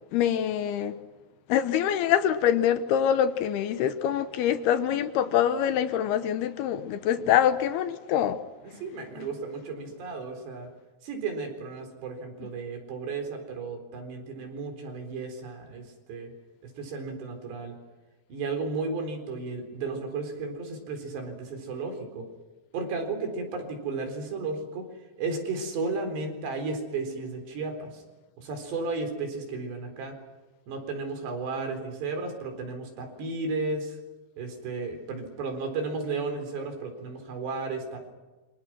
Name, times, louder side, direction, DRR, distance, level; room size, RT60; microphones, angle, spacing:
voice 1, 0.1-0.9 1.5-8.4, left 9 dB, 75° left, 2.8 m, -25 dB
voice 2, 8.6-10.7 11.0-16.3 16.6-17.8 18.3-22.3 22.7-24.9 25.2-28.0 28.4-30.2 30.7-34.0 34.4-38.1, right 3 dB, 75° right, 6.3 m, -34 dB
28.0 x 26.0 x 6.2 m
omnidirectional pair, 5.0 m